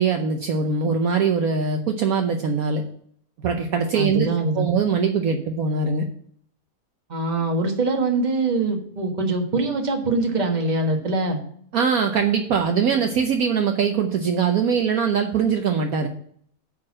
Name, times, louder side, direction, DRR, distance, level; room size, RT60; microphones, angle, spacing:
voice 1, 0.0-2.8 3.4-4.3 4.5-6.1 11.7-16.1, right 6 dB, 65° right, 4 dB, 1.1 m, -22 dB
voice 2, 3.9-4.7 7.1-11.4, right 2 dB, 30° right, 3 dB, 1.4 m, -23 dB
8.7 x 4.4 x 7.4 m, 0.62 s
omnidirectional pair, 1.8 m